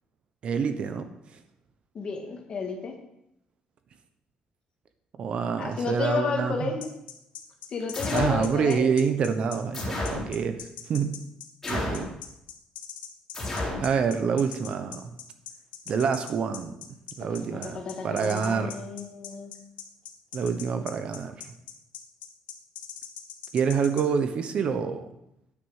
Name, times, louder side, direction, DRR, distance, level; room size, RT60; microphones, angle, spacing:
voice 1, 0.4-1.1 5.2-6.7 8.1-11.2 11.7-12.1 13.8-15.1 15.9-16.8 17.2-18.9 20.3-21.5 23.5-25.1, right 6 dB, 45° right, 9 dB, 0.9 m, -27 dB
voice 2, 1.9-2.9 5.6-6.9 7.7-8.9 17.3-19.5, left 4 dB, 35° left, 2 dB, 2.0 m, -32 dB
sound 1, 6.8-24.0, left 10 dB, 90° left, 1.6 m, -41 dB
sound 2, 7.9-8.5 9.7-10.3 11.6-12.1 13.3-13.9, left 1 dB, 15° left, 4.1 m, -31 dB
9.6 x 9.3 x 6.5 m, 0.81 s
cardioid pair, 170°, 3 cm